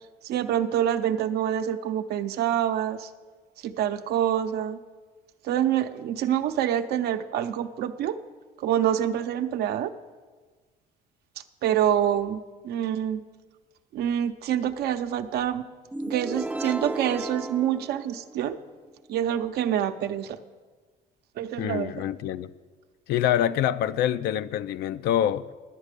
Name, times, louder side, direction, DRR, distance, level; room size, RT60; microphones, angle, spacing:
voice 1, 0.2-3.1 3.6-4.8 5.4-8.2 8.6-9.9 11.6-13.2 13.9-15.7 16.0-18.6 19.1-20.4 21.4-21.9, right 10 dB, 70° right, 0.6 m, -26 dB
sound 1, 15.9-18.7, right 2 dB, 10° right, 0.4 m, -34 dB
voice 2, 21.6-22.5 23.1-25.5, left 11 dB, 75° left, 0.5 m, -25 dB
11.0 x 8.2 x 6.6 m
cardioid pair, 110°, 17 cm